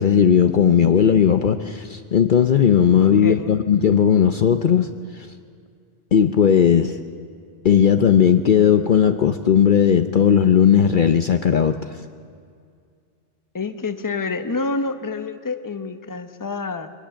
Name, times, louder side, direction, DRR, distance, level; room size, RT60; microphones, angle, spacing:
voice 1, 0.0-4.9 5.2-5.3 6.1-7.0 7.6-11.9, left 8 dB, 55° left, 8 dB, 0.8 m, -16 dB
voice 2, 3.0-3.7 13.5-16.9, left 3 dB, 20° left, 9 dB, 0.8 m, -28 dB
22.0 x 19.0 x 7.0 m, 2.2 s
omnidirectional pair, 1.1 m